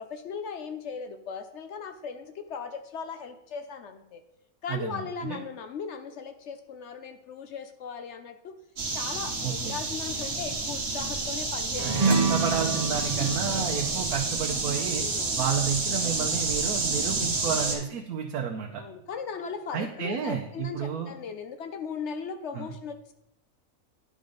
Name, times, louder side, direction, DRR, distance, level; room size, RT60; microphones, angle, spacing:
voice 1, 0.0-4.2 4.6-8.6 8.9-12.3 13.2-13.8 14.9-15.4 17.4-17.8 18.8-23.1, left 6 dB, 60° left, 9 dB, 0.8 m, -38 dB
voice 2, 4.7-5.4 9.4-9.8 12.1-15.0 15.4-18.8 19.7-21.1 22.5-22.7, right 7 dB, 85° right, 2 dB, 1.2 m, -31 dB
sound 1, 8.8-17.8, right 3 dB, 65° right, 1.7 m, -29 dB
sound 2, 11.8-16.5, right 4 dB, 35° right, 0.8 m, -29 dB
10.0 x 5.0 x 3.9 m, 0.80 s
omnidirectional pair, 1.5 m